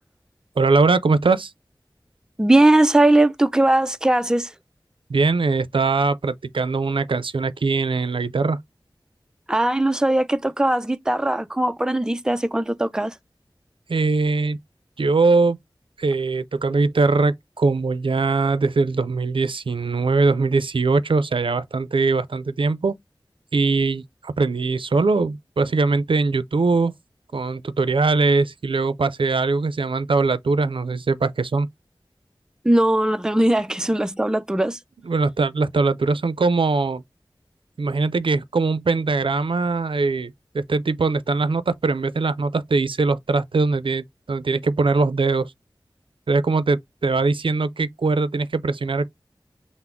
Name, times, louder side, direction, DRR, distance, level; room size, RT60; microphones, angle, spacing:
voice 1, 0.6-1.5 5.1-8.6 13.9-14.6 15.0-15.6 16.0-23.0 23.5-26.9 27.3-31.7 35.1-37.0 37.8-45.5 46.3-49.1, right 3 dB, 85° right, 0.4 m, -21 dB
voice 2, 2.4-4.5 9.5-13.1 32.6-34.8, right 1 dB, 10° right, 0.4 m, -19 dB
5.8 x 2.0 x 3.5 m
wide cardioid pair, 60°, 9 cm